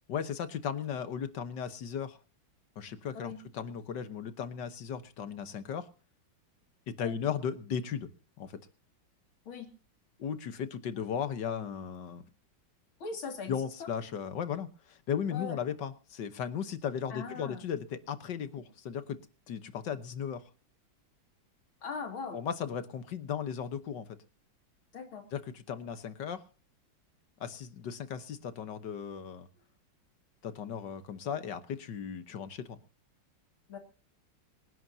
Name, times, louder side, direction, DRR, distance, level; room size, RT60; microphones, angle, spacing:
voice 1, 0.1-2.2 2.8-5.9 6.9-8.1 8.4-8.6 10.2-12.2 13.5-19.2 19.5-20.4 22.3-24.1 25.3-26.4 27.4-29.5 30.4-32.8, left 8 dB, 60° left, 1.6 m, -36 dB
voice 2, 13.0-13.9 15.3-15.6 17.1-17.6 21.8-22.4 24.9-25.3 33.7-33.8, left 5 dB, 80° left, 3.2 m, -40 dB
26.5 x 11.0 x 2.7 m
omnidirectional pair, 2.2 m